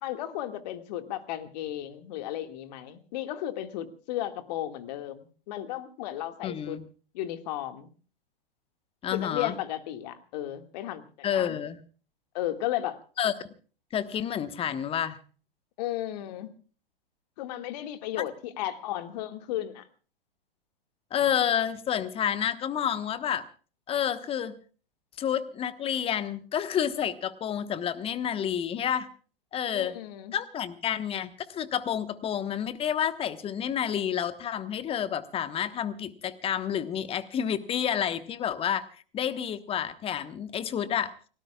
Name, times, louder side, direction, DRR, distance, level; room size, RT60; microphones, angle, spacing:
voice 1, 0.0-6.8 7.1-7.9 9.1-11.6 12.3-13.0 15.8-16.5 17.4-19.9 29.7-30.3, left 13 dB, 45° left, 9 dB, 2.0 m, -34 dB
voice 2, 6.4-6.8 9.0-9.5 11.2-11.8 13.2-13.3 13.9-15.2 18.2-18.3 21.1-23.4 23.9-24.5 25.2-29.1 29.5-29.9 30.3-38.8 39.1-41.1, left 9 dB, 20° left, 13 dB, 1.2 m, -29 dB
29.5 x 18.0 x 2.4 m, 0.39 s
figure-of-eight pair, 105°, 29 cm